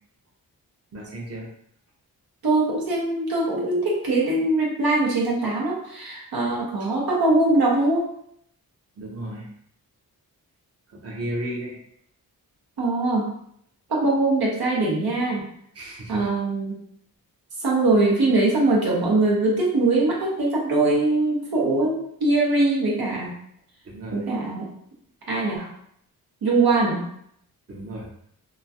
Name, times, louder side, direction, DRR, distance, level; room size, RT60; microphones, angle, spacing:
voice 1, 0.9-1.5 6.8-6.9 9.0-9.5 10.9-11.8 15.7-16.3 23.8-24.2 27.7-28.1, right 1 dB, 40° right, -2 dB, 0.8 m, -34 dB
voice 2, 2.4-8.1 12.8-13.3 13.9-15.5 16.1-16.8 17.6-23.3 24.1-24.7 25.3-25.7 26.4-27.1, right 2 dB, 70° right, -3 dB, 0.9 m, -22 dB
3.0 x 2.4 x 2.6 m, 0.68 s
cardioid pair, 65°, 38 cm